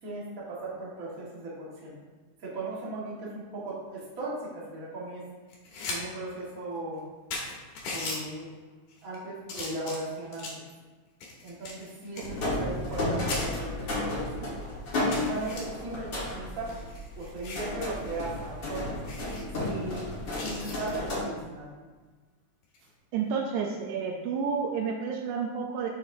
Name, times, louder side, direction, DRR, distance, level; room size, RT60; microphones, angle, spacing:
voice 1, 0.0-1.9 2.4-5.2 5.8-7.0 7.9-8.5 9.0-10.5 11.4-14.5 15.1-16.7 17.2-19.0 19.5-20.1 20.4-21.7, right 2 dB, 40° right, -5 dB, 1.4 m, -37 dB
sound 1, 5.5-6.0 6.4-6.5 7.0-7.1 7.3-8.2 8.9-9.2 9.5-10.7 11.2-13.0 13.3-13.5 14.1-14.2 14.5-14.6 15.1-15.6 16.5-17.7 18.1-18.3 18.6-18.7 19.0-19.4 20.3-20.9 22.6-22.9, left 3 dB, 75° left, 2.8 m, -38 dB
sound 2, 12.2-21.2, left 1 dB, 45° left, 1.7 m, -33 dB
voice 2, 23.1-25.9, right 6 dB, 80° right, 1 dB, 1.9 m, -30 dB
7.0 x 6.7 x 2.7 m, 1.3 s
omnidirectional pair, 3.7 m